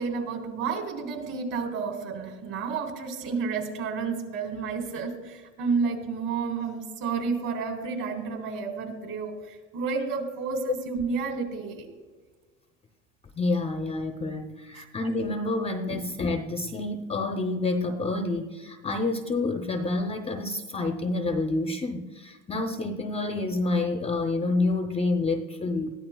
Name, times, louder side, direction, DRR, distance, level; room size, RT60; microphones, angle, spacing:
voice 1, 0.0-11.9 14.7-14.8 15.9-16.0, right 5 dB, 45° right, 3 dB, 3.8 m, -31 dB
voice 2, 13.4-25.9, left 2 dB, 15° left, 6 dB, 0.6 m, -28 dB
20.0 x 14.5 x 2.3 m, 1.4 s
supercardioid pair, 110°, 43 cm